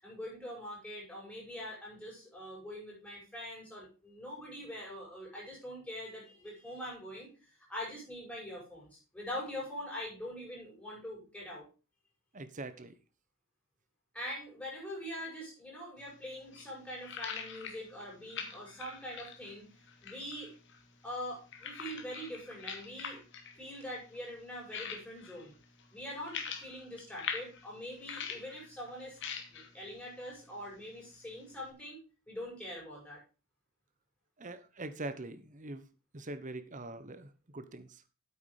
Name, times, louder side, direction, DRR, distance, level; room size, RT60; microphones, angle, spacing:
voice 1, 0.0-7.3 7.7-11.7 14.1-19.7 20.0-20.5 21.0-23.2 23.6-25.5 25.9-29.2 29.5-32.0 32.3-33.2, equal, 5° left, 6.5 m, -43 dB
voice 2, 12.3-12.9 34.4-35.8 36.1-38.0, right 2 dB, 35° right, 1.0 m, -43 dB
sound 1, 16.0-31.7, left 6 dB, 60° left, 1.9 m, -46 dB
9.1 x 8.4 x 4.9 m
head